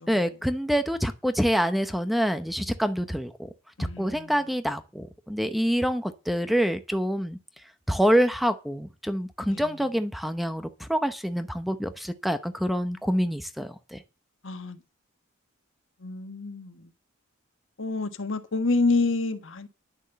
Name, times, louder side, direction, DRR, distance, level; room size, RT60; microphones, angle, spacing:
voice 1, 0.1-3.5 4.0-7.4 7.9-14.0, equal, ahead, 0.8 m, -26 dB
voice 2, 3.8-4.3 9.5-9.6 14.4-14.8 16.0-16.8 17.8-19.7, left 3 dB, 70° left, 1.4 m, -28 dB
11.0 x 7.1 x 6.9 m
head